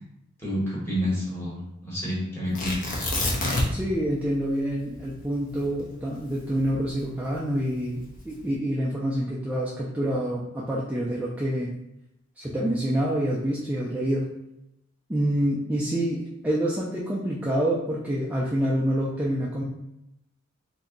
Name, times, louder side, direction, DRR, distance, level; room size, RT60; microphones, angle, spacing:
voice 1, 0.4-3.0, equal, 10° left, -7 dB, 1.1 m, -29 dB
Tearing, 2.5-3.9 4.2-4.3 4.9-7.2 7.9-8.4, left 1 dB, 45° left, 0.7 m, -28 dB
voice 2, 3.7-11.7 12.4-14.3 15.1-19.6, equal, 5° right, -6 dB, 0.3 m, -27 dB
2.7 x 2.2 x 3.8 m, 0.85 s
head